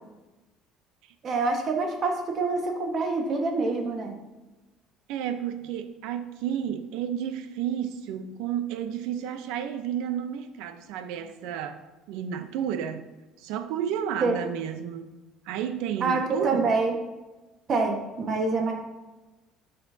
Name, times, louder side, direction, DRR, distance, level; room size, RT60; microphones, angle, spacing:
voice 1, 1.2-4.2 14.2-14.3 16.0-17.0 17.7-18.7, right 3 dB, 35° right, 1.4 m, -26 dB
voice 2, 5.1-11.8 12.1-13.1 13.4-15.1 15.5-16.7, right 9 dB, 80° right, 0.7 m, -31 dB
12.0 x 6.7 x 2.8 m
cardioid pair, 160°, 0 cm